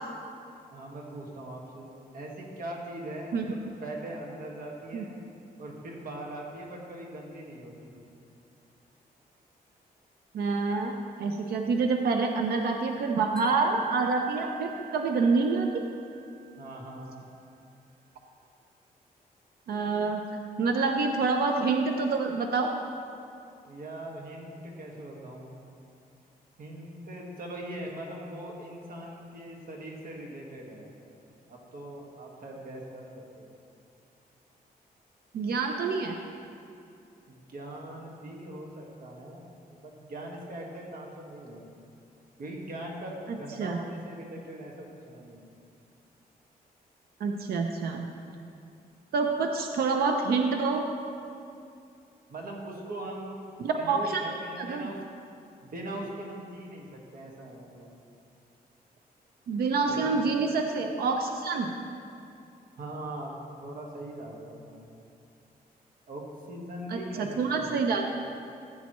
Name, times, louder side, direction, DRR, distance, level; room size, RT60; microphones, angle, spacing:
voice 1, 0.7-3.4 3.8-5.2 5.6-8.0 16.6-17.2 23.6-25.5 26.6-30.9 31.5-33.5 37.3-41.6 42.4-45.5 52.3-53.4 53.7-55.0 55.6-57.9 59.9-60.2 62.8-63.3 63.6-64.9 66.1-67.3 67.5-67.7, right 1 dB, 65° right, -1 dB, 1.8 m, -41 dB
voice 2, 10.3-10.9 11.2-15.8 19.7-20.2 20.6-22.7 35.3-36.2 43.3-43.8 47.2-48.1 49.1-50.8 53.6-54.2 54.6-54.9 59.5-61.7 66.9-68.0, right 4 dB, 80° right, 3 dB, 0.7 m, -27 dB
Wind chime, 13.4-16.5, right 6 dB, 5° left, 1.2 m, -42 dB
16.0 x 8.2 x 3.1 m, 2.5 s
wide cardioid pair, 155°, 16 cm